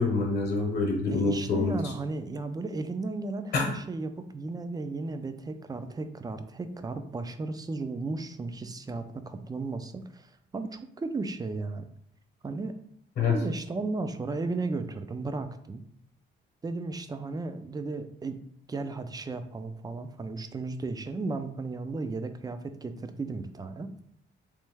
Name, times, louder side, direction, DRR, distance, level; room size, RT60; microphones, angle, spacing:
voice 1, 0.0-1.9 3.5-3.7 13.2-13.4, left 4 dB, 55° left, 1 dB, 0.9 m, -26 dB
voice 2, 1.1-11.9 12.4-12.7 13.3-15.8 16.6-18.4 18.7-23.9, right 3 dB, 20° right, 10 dB, 0.4 m, -35 dB
3.2 x 3.0 x 3.4 m, 0.70 s
cardioid pair, 90°, 20 cm